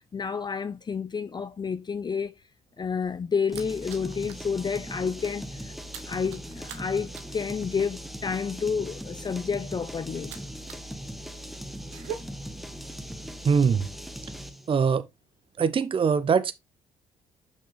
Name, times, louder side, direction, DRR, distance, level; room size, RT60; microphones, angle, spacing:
voice 1, 0.1-2.4 2.8-5.7 6.1-10.4, left 6 dB, 30° left, 0.5 m, -30 dB
sound 1, 2.7-4.5 4.8-5.1 5.3-10.9 11.2-12.1, right 9 dB, 90° right, 1.0 m, -44 dB
sound 2, 3.5-14.7, equal, ahead, 1.2 m, -39 dB
voice 2, 13.4-13.9 14.7-15.0 15.6-16.5, right 6 dB, 35° right, 0.7 m, -22 dB
6.4 x 5.9 x 3.1 m
hypercardioid pair, 60°, 15 cm